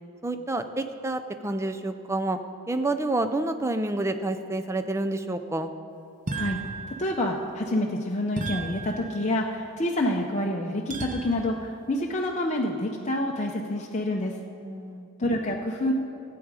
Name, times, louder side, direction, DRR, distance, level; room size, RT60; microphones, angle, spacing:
voice 1, 0.2-2.4 2.7-5.7 14.6-15.1, right 2 dB, 10° right, 8 dB, 0.4 m, -28 dB
sound 1, 6.3-7.5 8.4-9.5 10.9-11.7, right 3 dB, 35° right, 0.9 m, -35 dB
voice 2, 7.0-14.4 15.2-15.9, left 1 dB, 30° left, -1 dB, 0.6 m, -27 dB
15.5 x 8.6 x 4.8 m, 2.6 s
head